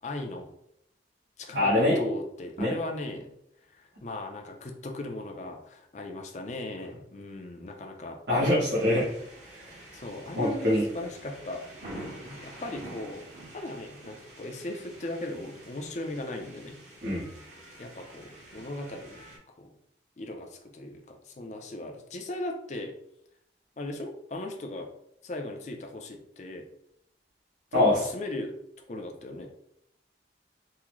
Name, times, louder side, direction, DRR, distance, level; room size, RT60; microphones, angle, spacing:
voice 1, 0.0-0.5 1.4-3.3 3.7-8.2 9.9-11.6 11.9-13.3 13.5-16.8 17.8-19.7 20.2-22.9 23.8-24.9 25.2-26.7 27.7-28.6 28.9-29.5, left 2 dB, 40° left, 4 dB, 0.4 m, -38 dB
voice 2, 1.5-2.1 2.6-2.7 8.3-9.1 9.5-9.7 10.4-10.9 17.0-17.3 27.7-28.0, left 1 dB, 75° right, -8 dB, 1.0 m, -24 dB
sound 1, 8.6-19.4, right 1 dB, 40° right, 0.8 m, -47 dB
3.6 x 2.0 x 3.0 m, 0.75 s
head